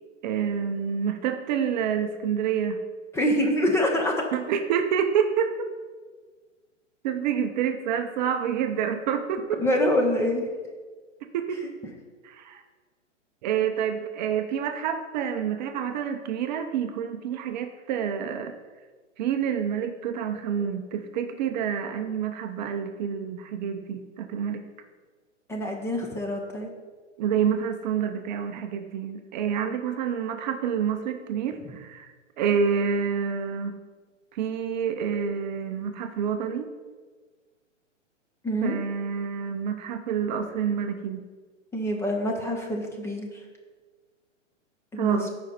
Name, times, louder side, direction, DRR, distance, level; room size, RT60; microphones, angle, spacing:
voice 1, 0.2-2.8 4.3-5.7 7.0-9.6 11.3-11.6 12.2-12.6 13.4-18.5 19.2-24.6 27.2-32.1 32.4-33.8 34.3-36.7 38.6-41.3 45.0-45.3, right 7 dB, 35° right, 6 dB, 0.7 m, -28 dB
voice 2, 3.1-4.3 9.6-10.4 25.5-26.7 38.4-38.8 41.7-43.4 44.9-45.3, equal, 5° left, 0 dB, 0.7 m, -25 dB
14.0 x 5.2 x 4.3 m, 1.4 s
hypercardioid pair, 140°, 37 cm